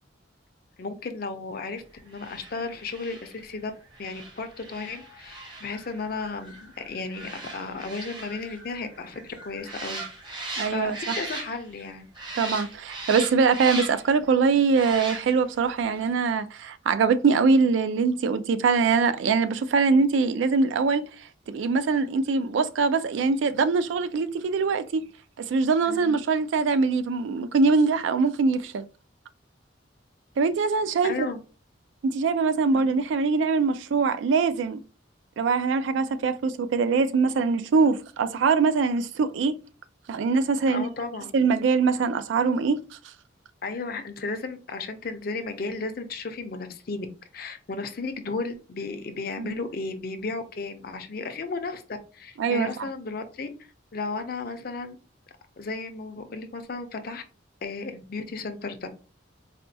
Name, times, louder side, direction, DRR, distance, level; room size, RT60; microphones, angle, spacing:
voice 1, 0.8-3.7 4.0-12.1 25.9-26.2 31.0-31.4 32.7-32.9 40.7-41.3 43.6-47.1 47.3-53.5 53.9-55.0 55.6-57.2 57.6-59.0, left 3 dB, 50° left, 0.5 m, -34 dB
sound 1, 2.1-11.9 12.1-14.2 14.7-15.6 15.9-16.0, right 2 dB, 25° right, 0.7 m, -38 dB
voice 2, 10.6-11.2 12.4-21.1 21.5-25.1 25.4-28.8 30.4-31.3 32.0-34.8 35.4-39.6 40.1-40.9 41.3-42.8 49.4-49.5 52.4-52.9, right 4 dB, 70° right, 0.3 m, -23 dB
4.2 x 2.2 x 2.6 m
head